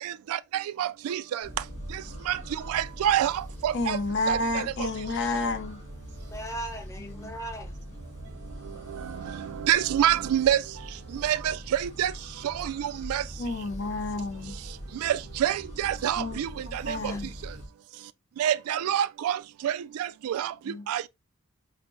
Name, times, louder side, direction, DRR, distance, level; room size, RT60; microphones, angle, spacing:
voice 1, 0.0-1.5 2.3-2.4 2.7-4.0 4.3-4.6 9.4-10.6 11.2-12.1 12.4-13.2 15.0-17.0 18.4-20.5 20.9-21.1, right 11 dB, 85° right, 0.3 m, -27 dB
sound 1, 1.4-17.7, equal, 30° left, 1.9 m, -42 dB
voice 2, 3.7-5.8 7.0-7.3 13.4-14.5 16.2-16.4 16.7-17.3 20.7-20.8, left 2 dB, 55° left, 0.7 m, -30 dB
voice 3, 6.3-7.8 17.1-17.3, right 1 dB, 15° left, 0.7 m, -38 dB
5.0 x 2.1 x 3.0 m
head